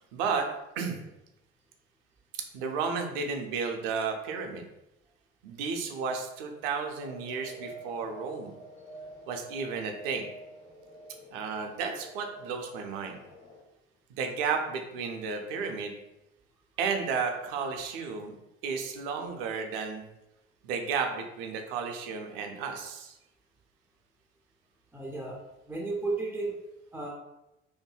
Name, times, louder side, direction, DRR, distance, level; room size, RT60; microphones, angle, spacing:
voice 1, 0.1-0.5 0.8-1.0 2.3-4.7 5.4-8.5 9.3-10.3 11.3-13.2 14.2-15.9 16.8-18.4 18.6-20.1 20.6-23.1, right 5 dB, 60° right, 4 dB, 0.5 m, -33 dB
sound 1, 7.0-13.6, right 1 dB, 75° left, 1.2 m, -48 dB
voice 2, 24.9-25.4 25.7-26.5 26.9-27.1, right 3 dB, 5° right, -4 dB, 0.4 m, -33 dB
2.6 x 2.5 x 2.2 m, 0.91 s
figure-of-eight pair, 55°, 33 cm